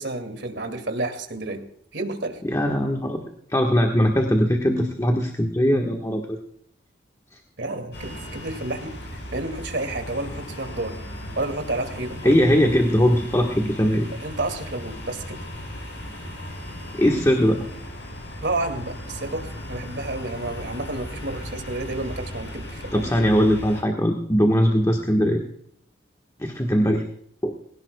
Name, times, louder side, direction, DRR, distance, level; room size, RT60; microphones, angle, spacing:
voice 1, 0.0-1.6 1.9-2.4 7.6-11.0 11.4-12.4 14.2-15.4 18.4-23.1, right 2 dB, 75° right, 7 dB, 2.3 m, -30 dB
voice 2, 2.4-3.2 3.5-6.4 7.3-7.4 12.2-14.1 17.0-17.7 22.9-25.4 26.4-27.1 27.4-27.5, equal, 15° left, 2 dB, 1.4 m, -20 dB
sound 1, 7.9-23.8, left 1 dB, 70° left, 7.0 m, -37 dB
21.0 x 17.5 x 2.3 m, 0.67 s
head